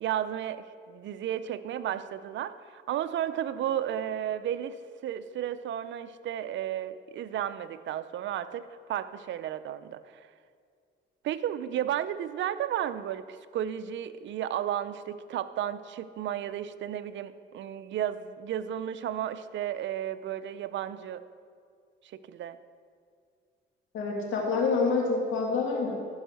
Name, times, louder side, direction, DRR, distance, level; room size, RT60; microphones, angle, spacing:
voice 1, 0.0-4.8 5.0-10.3 11.2-21.2 22.1-22.6, right 10 dB, 70° right, 13 dB, 0.6 m, -33 dB
voice 2, 23.9-25.9, left 4 dB, 80° left, -1 dB, 2.2 m, -27 dB
13.5 x 5.5 x 6.4 m, 2.2 s
cardioid pair, 90°, 20 cm